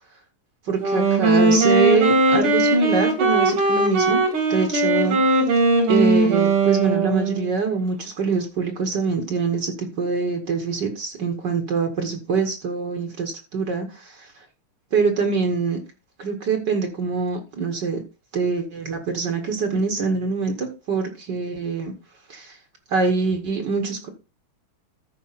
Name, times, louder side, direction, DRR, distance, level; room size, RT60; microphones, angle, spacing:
voice 1, 0.6-4.2 4.5-5.5 5.9-14.4 14.9-15.8 16.2-18.0 18.3-21.9 22.3-22.6 22.9-24.1, right 4 dB, 55° right, 4 dB, 1.9 m, -24 dB
Wind instrument woodwind instrument, 0.8-7.5, right 2 dB, 85° right, 3.2 m, -19 dB
14.0 x 5.3 x 4.0 m, 0.31 s
omnidirectional pair, 2.4 m